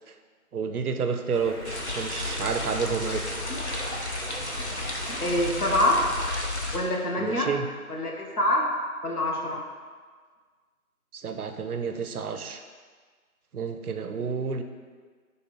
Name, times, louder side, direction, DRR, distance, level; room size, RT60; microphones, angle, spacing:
voice 1, 0.5-1.6 1.9-3.3 7.2-7.7 11.1-12.6 13.5-14.6, right 5 dB, 75° right, 7 dB, 0.5 m, -30 dB
Stream, 1.3-6.3, equal, 35° right, 0.7 m, -40 dB
sound 1, 1.6-6.8, left 2 dB, 50° left, 0.5 m, -32 dB
voice 2, 5.2-6.0 6.7-7.5 7.9-8.6 9.0-9.6, left 1 dB, 85° left, -1 dB, 1.0 m, -25 dB
3.3 x 3.0 x 4.4 m, 1.5 s
figure-of-eight pair, 170°, 45 cm